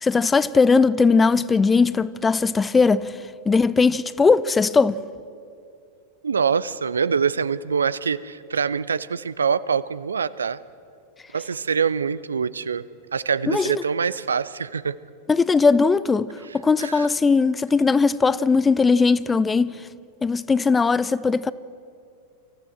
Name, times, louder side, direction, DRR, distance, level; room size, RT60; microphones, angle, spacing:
voice 1, 0.0-3.1 3.5-5.0 13.5-13.8 15.3-19.7 20.2-21.5, left 4 dB, 15° left, 0.5 m, -19 dB
voice 2, 6.2-10.6 11.3-12.8 13.1-15.0 16.5-17.1, right 6 dB, 70° right, 0.5 m, -24 dB
25.5 x 14.5 x 7.8 m
figure-of-eight pair, 90°, 0 cm